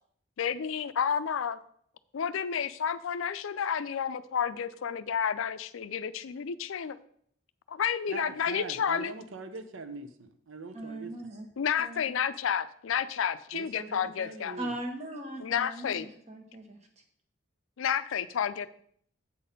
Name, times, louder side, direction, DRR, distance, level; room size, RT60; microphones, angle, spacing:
voice 1, 0.4-1.6 2.1-7.0 7.7-9.1 11.6-14.6 15.4-16.1 17.8-18.7, left 7 dB, 75° left, 14 dB, 0.4 m, -30 dB
voice 2, 8.1-11.1 13.5-14.7, right 3 dB, 70° right, 9 dB, 0.7 m, -42 dB
voice 3, 10.7-11.5 11.8-12.1 14.6-17.0, right 1 dB, 30° right, 3 dB, 1.1 m, -39 dB
8.4 x 4.1 x 5.2 m, 0.64 s
head